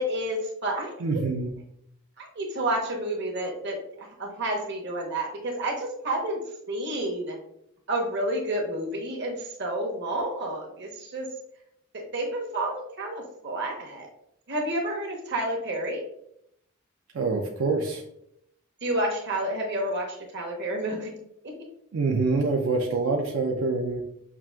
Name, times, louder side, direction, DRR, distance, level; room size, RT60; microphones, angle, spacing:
voice 1, 0.0-1.2 2.2-6.4 6.7-7.4 7.9-11.3 11.9-14.1 14.5-16.0 18.8-21.1, right 1 dB, 55° right, 0 dB, 1.0 m, -30 dB
voice 2, 1.0-1.5 17.1-18.0 21.9-24.0, right 3 dB, 85° right, 0 dB, 0.5 m, -25 dB
5.9 x 2.5 x 2.3 m, 0.75 s
head